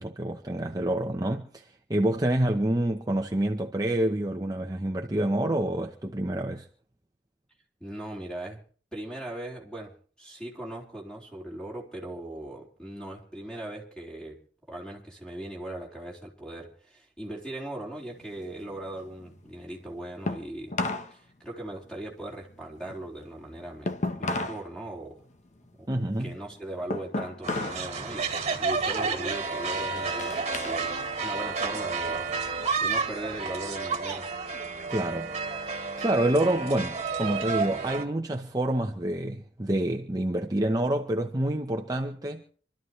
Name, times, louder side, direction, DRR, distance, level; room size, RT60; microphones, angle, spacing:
voice 1, 0.0-6.7 25.9-26.3 34.9-42.4, right 1 dB, 20° right, 0.9 m, -28 dB
voice 2, 7.8-8.6 8.9-9.9 10.2-14.4 14.7-20.8 21.1-25.2 25.8-25.9 26.2-28.3 28.6-30.9 31.2-32.3 32.8-34.3, right 1 dB, 5° left, 4.1 m, -39 dB
sound 1, 18.0-21.1 21.5-24.7 25.0-27.9 28.2-28.6 29.2-30.8 31.2-32.3, left 2 dB, 45° left, 1.0 m, -35 dB
sound 2, 27.4-38.0, right 4 dB, 40° right, 1.9 m, -31 dB
26.5 x 13.0 x 3.2 m
head